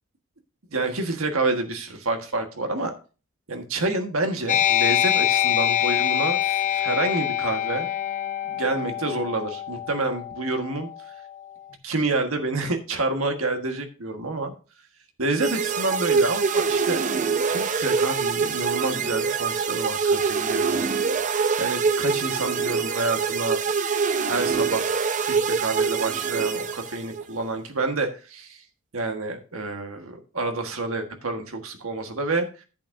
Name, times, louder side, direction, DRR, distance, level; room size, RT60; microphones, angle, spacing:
voice 1, 0.7-2.9 3.5-7.9 8.5-10.9 11.8-14.5 15.2-17.0 17.4-20.8 21.6-23.6 24.2-24.8 25.2-28.6 28.9-32.4, right 2 dB, 85° right, 5 dB, 1.5 m, -28 dB
sound 1, 4.5-11.6, left 11 dB, 40° left, 0.6 m, -25 dB
sound 2, 15.4-27.2, right 5 dB, 35° right, 0.6 m, -24 dB
10.5 x 8.8 x 2.7 m, 0.35 s
head